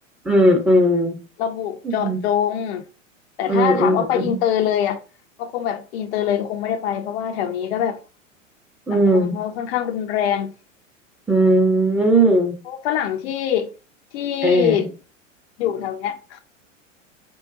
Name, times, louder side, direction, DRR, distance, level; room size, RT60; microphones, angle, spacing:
voice 1, 0.2-1.2 1.8-2.2 3.5-4.4 8.9-9.4 11.3-12.6 14.4-14.9, right 1 dB, 5° right, 0.6 m, -17 dB
voice 2, 1.4-2.8 3.4-5.0 5.4-8.0 8.9-10.5 12.7-13.7 14.1-14.9 15.6-16.4, left 9 dB, 55° left, 0.5 m, -24 dB
3.6 x 2.1 x 2.5 m
hypercardioid pair, 95°, 39 cm